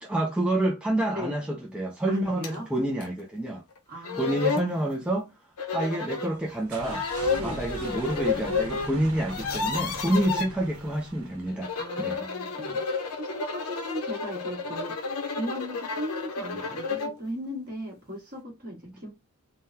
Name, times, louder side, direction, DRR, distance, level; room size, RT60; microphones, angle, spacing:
voice 1, 0.0-3.6 4.1-5.3 5.7-11.7 12.0-12.2, right 1 dB, 5° right, 0.4 m, -28 dB
voice 2, 2.1-2.7 3.9-5.0 7.3-7.6 10.2-10.4 11.7-19.1, equal, 40° right, 1.4 m, -38 dB
sound 1, 2.4-2.6 3.0-3.1 3.8-3.9 4.0-4.7 5.6-6.3 6.8-8.9 9.2-10.5 11.5-17.2, left 4 dB, 85° left, 0.7 m, -31 dB
sound 2, 6.2-11.8, right 2 dB, 75° right, 1.0 m, -41 dB
3.7 x 2.2 x 2.6 m
head